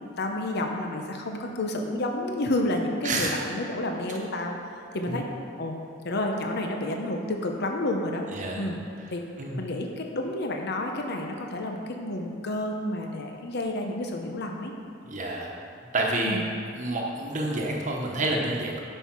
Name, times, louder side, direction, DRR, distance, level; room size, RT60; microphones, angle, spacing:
voice 1, 0.2-4.6 4.9-5.3 5.6-5.8 6.0-8.3 8.6-8.8 9.1-9.2 9.6-14.7 16.2-16.4, left 1 dB, 60° left, 2 dB, 0.8 m, -30 dB
voice 2, 8.3-8.7 9.4-9.6 15.1-15.5 15.9-16.4 16.8-18.8, right 2 dB, 40° right, -1 dB, 1.1 m, -28 dB
9.9 x 5.6 x 6.1 m, 2.6 s
head